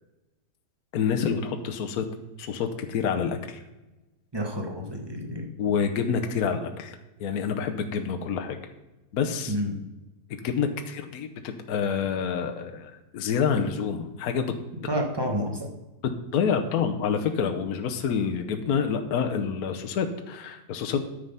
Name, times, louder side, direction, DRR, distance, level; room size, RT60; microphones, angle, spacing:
voice 1, 0.9-2.0 2.4-3.6 5.6-8.6 9.1-9.5 10.4-14.5 16.0-21.0, left 6 dB, 65° left, 5 dB, 1.2 m, -27 dB
voice 2, 4.3-5.5 9.5-9.7 14.9-15.7, equal, 15° right, 2 dB, 1.2 m, -29 dB
9.4 x 6.7 x 5.6 m, 1.0 s
omnidirectional pair, 1.8 m